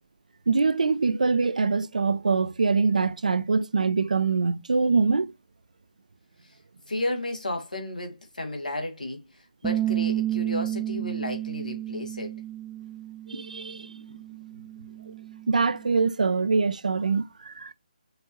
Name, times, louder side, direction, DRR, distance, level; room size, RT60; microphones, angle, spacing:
voice 1, 0.5-5.3 13.3-14.0 15.1-15.2 15.5-17.7, right 4 dB, 70° right, 0.5 m, -24 dB
voice 2, 6.9-12.4, left 1 dB, 85° left, 1.7 m, -33 dB
Bass guitar, 9.6-15.9, right 13 dB, 5° right, 0.4 m, -32 dB
5.8 x 2.7 x 2.9 m
figure-of-eight pair, 145°, 4 cm